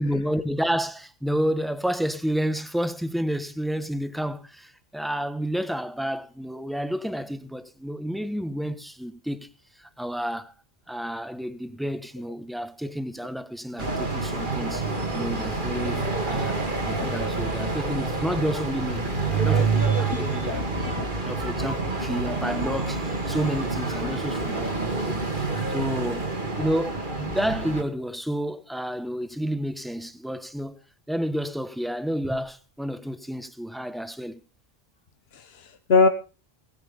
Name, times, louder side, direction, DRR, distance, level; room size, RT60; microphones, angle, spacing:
voice 1, 0.0-9.5 9.8-10.5 10.9-14.9 15.1-20.7 21.1-26.3 26.6-30.8 31.1-34.4, equal, ahead, 1.2 m, -30 dB
sound 1, 13.8-27.8, right 3 dB, 50° right, 2.5 m, -27 dB
voice 2, 20.1-21.1 35.3-36.1, left 4 dB, 75° left, 1.3 m, -24 dB
18.5 x 9.6 x 5.3 m
omnidirectional pair, 1.0 m